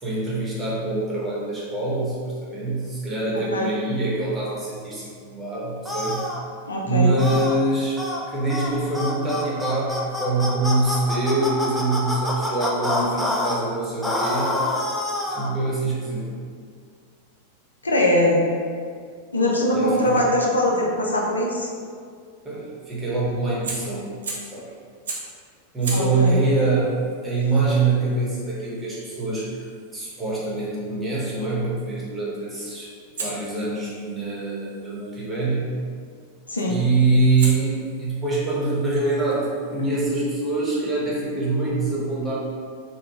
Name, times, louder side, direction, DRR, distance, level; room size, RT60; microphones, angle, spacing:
voice 1, 0.0-6.2 6.8-8.0 8.3-14.7 15.3-16.3 19.7-20.2 22.4-24.1 24.5-24.7 25.7-26.9 27.2-29.5 29.9-32.9 33.2-35.8 36.7-42.3, right 2 dB, 15° right, -7 dB, 1.1 m, -24 dB
voice 2, 3.3-3.7 6.7-7.1 17.8-18.5 19.3-21.7 25.9-26.4 36.5-36.8, left 1 dB, 75° left, -1 dB, 0.4 m, -21 dB
sound 1, 5.8-6.4 7.2-7.5 8.0-8.2 8.5-8.7 8.9-13.6 14.0-15.5, left 1 dB, ahead, 0.5 m, -26 dB
Fire, 23.6-24.6 25.0-25.4 25.8-30.7 33.1-35.3 36.6-36.9 37.4-40.8, right 3 dB, 65° right, 0.7 m, -39 dB
3.7 x 2.2 x 3.5 m, 2.1 s
figure-of-eight pair, 90°, 0 cm